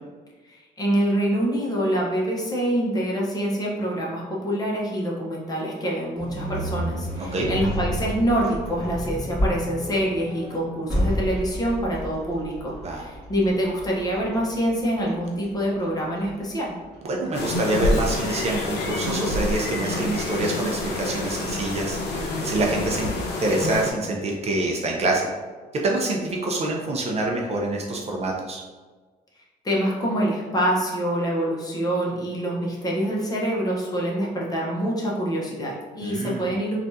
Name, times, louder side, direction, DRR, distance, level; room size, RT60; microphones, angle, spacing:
voice 1, 0.5-16.7 29.6-36.8, equal, 20° left, -3 dB, 0.8 m, -25 dB
sound 1, 6.2-17.3, equal, 5° right, 1.5 m, -31 dB
voice 2, 17.0-23.1 23.4-25.3 25.8-28.6 36.0-36.5, right 2 dB, 40° right, 0 dB, 0.5 m, -26 dB
sound 2, 17.3-23.9, left 2 dB, 80° left, 0.6 m, -27 dB
3.4 x 2.4 x 2.6 m, 1.4 s
cardioid pair, 110°, 17 cm